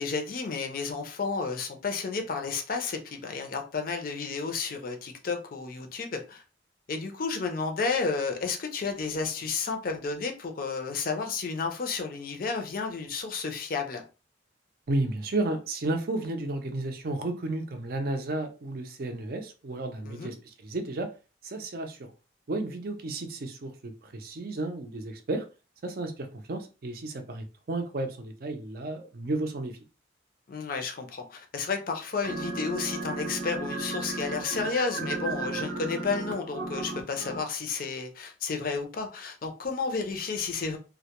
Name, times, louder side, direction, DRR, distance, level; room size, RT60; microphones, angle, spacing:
voice 1, 0.0-6.4 6.9-14.0 20.0-20.3 30.5-40.8, left 4 dB, 50° left, 0.5 m, -32 dB
voice 2, 14.9-20.4 20.6-21.1 21.4-22.0 22.5-25.4 25.8-29.8, right 2 dB, 50° right, 0.5 m, -32 dB
sound 1, 32.2-37.4, right 3 dB, 90° right, 0.7 m, -34 dB
2.1 x 2.1 x 2.9 m
head